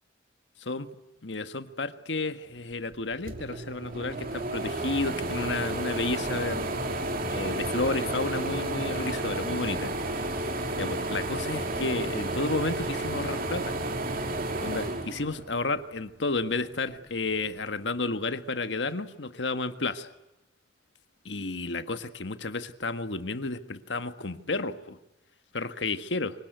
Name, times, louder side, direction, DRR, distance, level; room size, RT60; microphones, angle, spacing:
voice 1, 0.6-0.9 1.2-6.7 7.3-9.9 10.8-13.8 14.6-20.1 21.2-25.0 25.5-26.3, left 3 dB, 80° left, 10 dB, 1.6 m, -32 dB
sound 1, 2.9-3.0 3.3-15.9 16.3-17.4, right 2 dB, 55° right, 2.9 m, -32 dB
26.0 x 23.5 x 9.4 m, 0.92 s
head